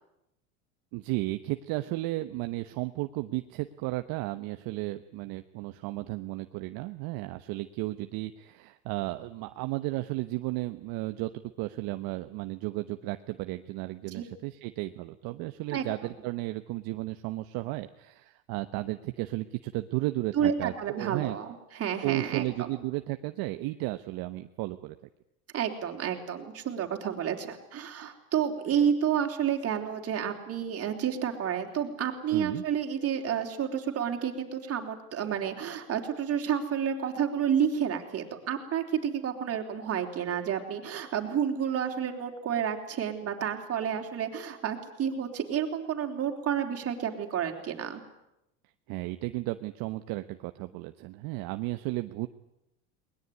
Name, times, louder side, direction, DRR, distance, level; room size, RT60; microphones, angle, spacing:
voice 1, 0.9-11.3 11.6-21.4 22.0-25.0 32.3-32.6 48.9-52.3, right 19 dB, 55° right, 9 dB, 1.1 m, -34 dB
voice 2, 20.3-22.7 25.5-48.0, right 8 dB, 35° right, 3 dB, 3.8 m, -30 dB
21.5 x 20.5 x 9.5 m, 0.86 s
supercardioid pair, 125°, 42 cm